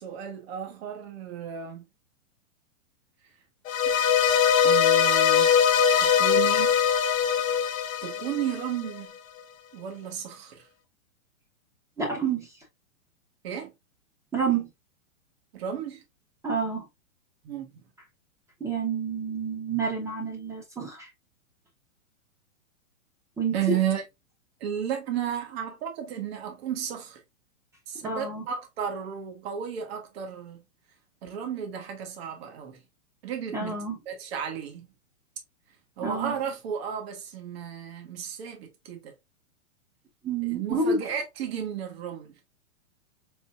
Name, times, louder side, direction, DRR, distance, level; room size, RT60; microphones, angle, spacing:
voice 1, 0.0-1.8 4.6-5.5 6.0-6.8 8.0-9.1 9.7-10.7 13.4-13.7 15.5-16.0 17.4-17.7 23.5-24.0 24.6-27.2 27.9-30.6 31.2-32.8 33.2-33.8 34.1-34.9 36.0-39.1 40.5-42.3, right 9 dB, 50° right, 1.4 m, -33 dB
sound 1, 3.7-8.9, left 8 dB, 75° left, 0.7 m, -22 dB
voice 2, 12.0-12.6 14.3-14.7 16.4-16.9 18.6-21.1 23.4-23.8 28.0-28.5 33.5-34.0 36.0-36.4 40.2-41.0, right 4 dB, 5° right, 1.0 m, -29 dB
4.3 x 4.0 x 2.5 m
hypercardioid pair, 150°, 40 cm